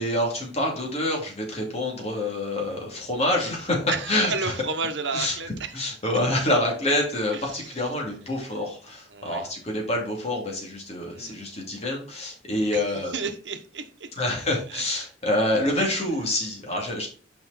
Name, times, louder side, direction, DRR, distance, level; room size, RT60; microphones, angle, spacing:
voice 1, 0.0-3.8 4.1-4.5 5.1-5.3 5.7-13.1 14.2-17.1, left 1 dB, 35° left, -1 dB, 2.5 m, -27 dB
voice 2, 3.9-5.7 7.3-7.7 9.1-9.5 11.1-11.4 12.7-14.1 14.7-14.8 15.8-16.0, right 4 dB, 75° right, 7 dB, 1.0 m, -32 dB
6.1 x 5.3 x 4.2 m, 0.41 s
head